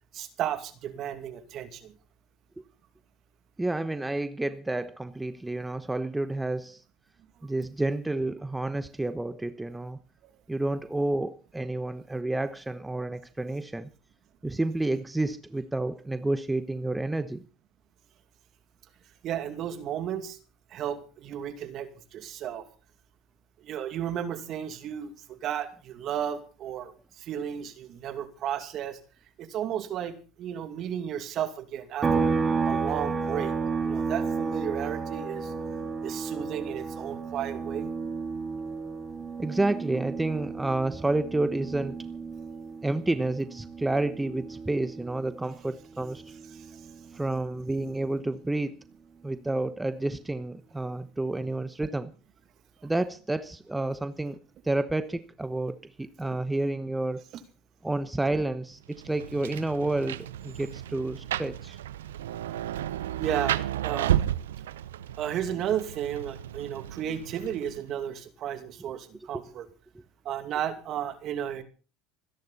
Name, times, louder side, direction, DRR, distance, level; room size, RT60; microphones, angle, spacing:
voice 1, 0.1-1.9 10.2-10.3 19.2-20.4 20.7-22.6 23.6-29.0 29.4-32.3 32.7-33.6 33.8-35.5 36.0-37.9 46.5-46.8 62.5-62.6 63.2-64.2 65.2-69.7 70.2-71.6, right 10 dB, 50° right, 2.4 m, -33 dB
voice 2, 3.6-6.8 7.4-10.0 10.5-13.9 14.4-17.4 39.4-42.0 42.8-46.3 47.1-48.7 49.2-52.1 52.8-54.4 54.6-57.2 57.8-61.8, right 2 dB, 10° right, 1.1 m, -30 dB
sound 1, 32.0-45.6 45.9-48.1, right 4 dB, 25° right, 2.4 m, -32 dB
Rain, 58.9-68.0, right 11 dB, 85° right, 0.7 m, -33 dB
26.5 x 10.5 x 4.2 m
hypercardioid pair, 90°, 0 cm